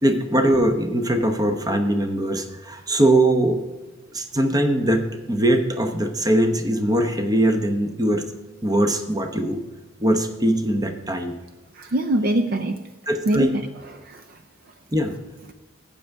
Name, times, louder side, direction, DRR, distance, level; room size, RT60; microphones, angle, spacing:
voice 1, 0.0-3.6 4.1-8.2 8.6-9.6 10.0-11.4 13.1-13.5 14.9-15.2, right 1 dB, 20° right, 6 dB, 0.8 m, -21 dB
voice 2, 11.7-12.8 13.3-13.7 13.9-14.4, right 1 dB, 45° right, 8 dB, 0.4 m, -23 dB
12.0 x 8.3 x 3.5 m, 1.2 s
head